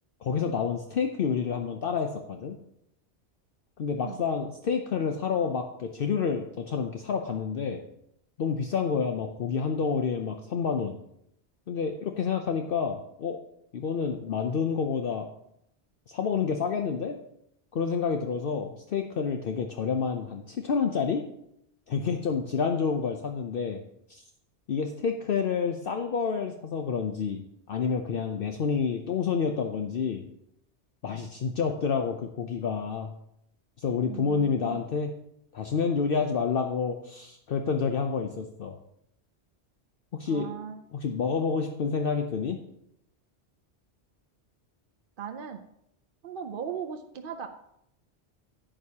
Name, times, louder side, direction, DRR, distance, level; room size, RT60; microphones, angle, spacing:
voice 1, 0.2-2.6 3.8-7.8 8.4-11.0 11.7-13.4 13.7-15.3 16.1-17.2 17.7-21.3 21.9-23.8 24.1-24.2 24.7-27.4 27.7-30.2 31.0-33.1 33.8-35.1 35.5-38.8 40.1-40.5 40.9-42.6, left 6 dB, 60° left, 5 dB, 0.8 m, -29 dB
voice 2, 34.0-34.8 40.3-40.8 45.2-45.6 46.2-47.5, right 8 dB, 55° right, 5 dB, 0.7 m, -38 dB
11.0 x 8.8 x 2.8 m, 0.76 s
omnidirectional pair, 1.1 m